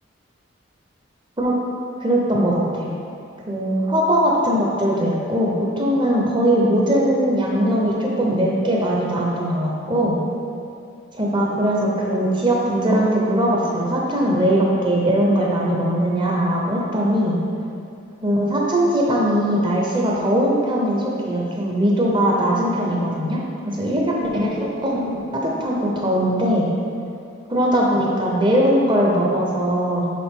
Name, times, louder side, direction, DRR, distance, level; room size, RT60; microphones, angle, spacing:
voice 1, 2.0-2.9 3.5-10.2 11.1-17.4 18.2-23.4 23.6-26.7 27.5-30.1, equal, 25° right, -3 dB, 0.7 m, -20 dB
7.6 x 3.5 x 3.7 m, 2.5 s
head